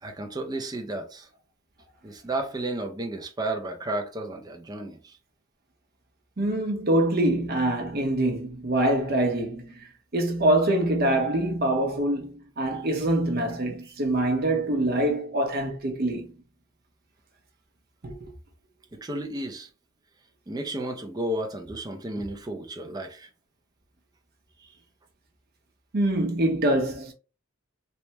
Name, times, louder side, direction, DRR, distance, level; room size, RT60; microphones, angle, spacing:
voice 1, 0.0-1.3 2.0-5.2 13.8-13.9 18.9-19.7 20.5-23.3 24.6-24.8, right 1 dB, 20° right, 0.4 m, -33 dB
voice 2, 6.4-9.9 10.1-16.3 18.0-18.3 25.9-27.1, right 1 dB, 50° right, 0.7 m, -25 dB
3.3 x 2.1 x 2.8 m
head